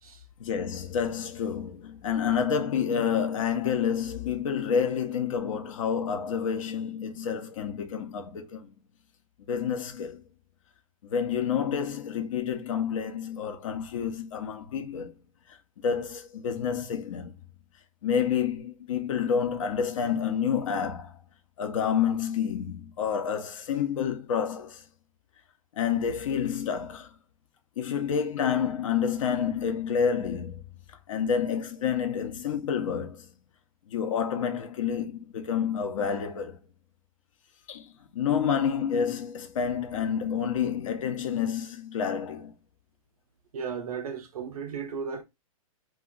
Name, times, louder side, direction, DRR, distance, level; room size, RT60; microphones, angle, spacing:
voice 1, 0.4-8.7 9.5-10.2 11.0-15.1 15.5-17.3 18.0-21.2 21.6-24.8 25.7-27.1 27.8-30.6 31.1-33.3 33.9-36.6 37.7-42.5, left 7 dB, 65° left, 0.8 m, -29 dB
voice 2, 43.5-45.2, right 6 dB, 90° right, 0.6 m, -35 dB
2.4 x 2.4 x 3.8 m
hypercardioid pair, 140°, 18 cm